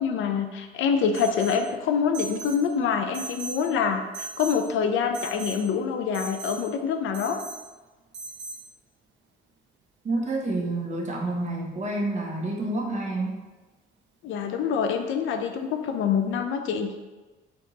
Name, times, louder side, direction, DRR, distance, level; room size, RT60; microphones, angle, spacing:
voice 1, 0.0-7.4 14.2-16.9, left 6 dB, 80° left, 5 dB, 0.5 m, -26 dB
Alarm, 1.1-1.6 2.1-2.6 3.1-3.6 4.1-4.6 5.1-5.6 6.1-6.6 7.1-7.6 8.1-8.6, right 3 dB, 65° right, 0.9 m, -37 dB
voice 2, 10.0-13.4, right 2 dB, 35° right, 0 dB, 1.0 m, -28 dB
4.3 x 2.9 x 4.0 m, 1.2 s
cardioid pair, 90°, 20 cm